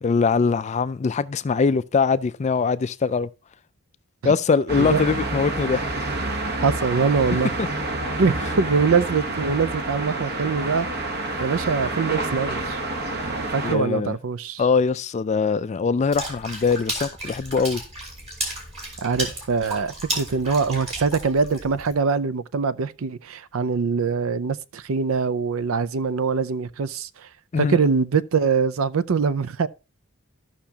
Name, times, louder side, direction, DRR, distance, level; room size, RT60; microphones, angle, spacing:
voice 1, 0.0-3.3 4.2-5.9 13.6-14.2 14.6-17.8 27.5-27.8, left 5 dB, 30° left, 0.3 m, -22 dB
sound 1, 4.7-13.8, right 2 dB, 50° right, 1.0 m, -28 dB
voice 2, 4.8-5.1 6.6-7.5 8.2-12.8 13.1-14.6 19.0-27.1 27.6-29.7, right 5 dB, 70° right, 0.5 m, -23 dB
Water / Splash splatter, 16.1-21.9, right 1 dB, 30° right, 2.9 m, -33 dB
13.5 x 5.9 x 2.8 m
head